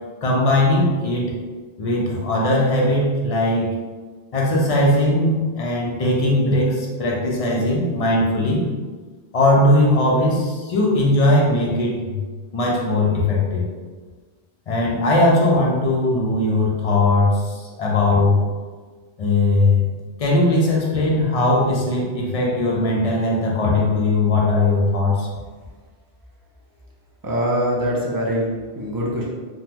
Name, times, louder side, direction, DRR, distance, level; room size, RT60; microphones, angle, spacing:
voice 1, 0.2-1.4 1.8-3.7 4.3-8.6 9.3-12.2 12.5-13.7 14.7-18.4 19.2-19.9 20.2-25.3, left 2 dB, 45° left, -3 dB, 0.5 m, -19 dB
voice 2, 27.2-29.3, equal, 30° right, -4 dB, 0.4 m, -23 dB
3.7 x 2.1 x 2.9 m, 1.4 s
omnidirectional pair, 1.2 m